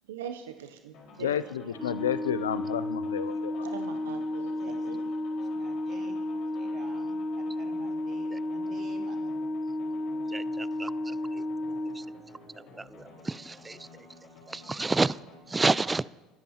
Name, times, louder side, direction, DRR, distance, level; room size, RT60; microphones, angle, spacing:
voice 1, 0.1-1.4 1.6-1.7 3.6-5.0, right 9 dB, 85° right, 7 dB, 0.6 m, -42 dB
sound 1, 0.9-15.4, left 2 dB, 60° left, 4.5 m, -52 dB
voice 2, 1.2-3.6, left 9 dB, 90° left, 15 dB, 0.4 m, -31 dB
Organ, 1.7-12.6, left 1 dB, 15° left, 1.4 m, -33 dB
voice 3, 4.6-5.1 5.5-6.2 6.5-9.2, right 5 dB, 50° right, 4 dB, 2.0 m, -52 dB
voice 4, 10.3-10.9 12.8-13.8 14.5-15.2 15.5-16.0, right 3 dB, 20° right, 20 dB, 0.3 m, -29 dB
21.5 x 10.5 x 2.9 m, 1.1 s
hypercardioid pair, 75°, 0 cm